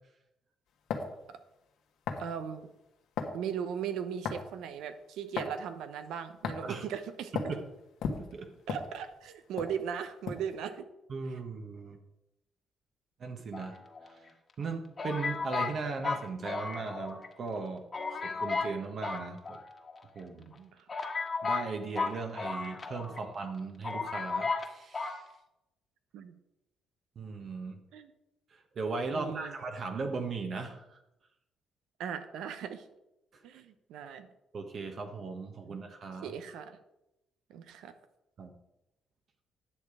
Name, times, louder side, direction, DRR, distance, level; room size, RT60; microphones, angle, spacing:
sound 1, 0.9-1.2 2.1-2.3 3.2-3.4 4.2-4.5 5.4-5.6 6.4-6.7 7.3-7.6 8.0-9.3 9.6-9.7 10.3-10.5, left 5 dB, 80° left, 1.4 m, -35 dB
voice 1, 2.2-2.7 3.3-7.3 8.7-10.9 20.4-20.9 23.1-23.2 26.1-26.3 27.9-28.1 29.1-29.5 32.0-32.9 33.4-34.3 35.6-35.8 36.2-36.8 37.5-37.9, right 8 dB, 85° right, 10 dB, 0.8 m, -38 dB
voice 2, 8.2-8.5 11.1-12.0 13.2-13.8 14.0-14.1 14.6-19.6 20.1-20.5 21.4-25.2 27.2-27.9 28.5-31.0 33.3-33.4 34.5-36.3 38.4-38.5, right 4 dB, 55° right, 4 dB, 1.2 m, -38 dB
sound 2, 13.5-14.3 15.0-17.3 17.6-17.7 17.9-18.7 19.0-20.0 20.5-20.6 20.9-23.2 23.5-23.6 23.8-24.7 24.9-25.2, left 4 dB, 35° left, 1.4 m, -34 dB
10.0 x 6.7 x 4.8 m, 0.90 s
cardioid pair, 90°, 0 cm